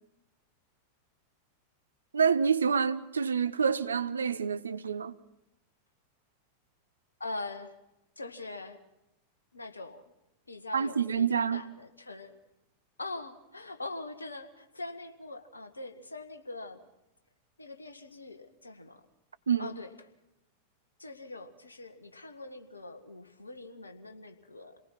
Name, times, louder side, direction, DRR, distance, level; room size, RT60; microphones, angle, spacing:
voice 1, 2.1-5.1 10.7-11.6 19.5-19.7, right 6 dB, 70° right, 0.8 m, -27 dB
voice 2, 7.2-7.7 8.2-8.8 9.5-10.0 10.5-12.4 13.0-16.8 17.6-19.0 19.6-19.9 21.0-24.8, left 2 dB, 80° left, 1.7 m, -42 dB
28.0 x 19.0 x 6.0 m
figure-of-eight pair, 90°, 0 cm